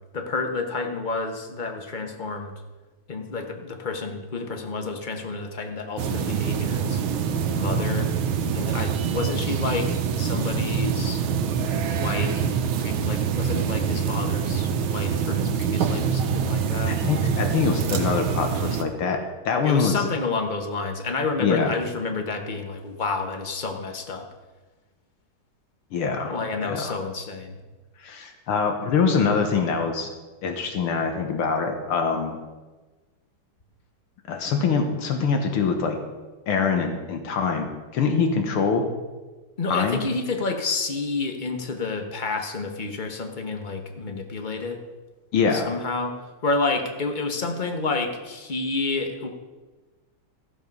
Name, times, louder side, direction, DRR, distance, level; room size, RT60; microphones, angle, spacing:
voice 1, 0.1-2.5 3.1-7.0 7.5-8.1 8.5-11.2 11.9-12.5 12.8-16.9 19.6-24.3 26.3-27.6 39.6-44.8 45.5-46.2 46.4-49.3, left 3 dB, 35° left, 4 dB, 0.8 m, -29 dB
sound 1, 6.0-18.8, right 7 dB, 75° right, 1.6 m, -25 dB
voice 2, 16.9-19.2 19.5-20.0 21.4-21.8 25.9-27.0 28.0-30.1 30.4-32.4 34.3-36.0 36.5-38.8 39.7-40.0 45.3-45.7, left 5 dB, 80° left, 4 dB, 2.0 m, -24 dB
15.0 x 7.2 x 5.3 m, 1.3 s
omnidirectional pair, 2.4 m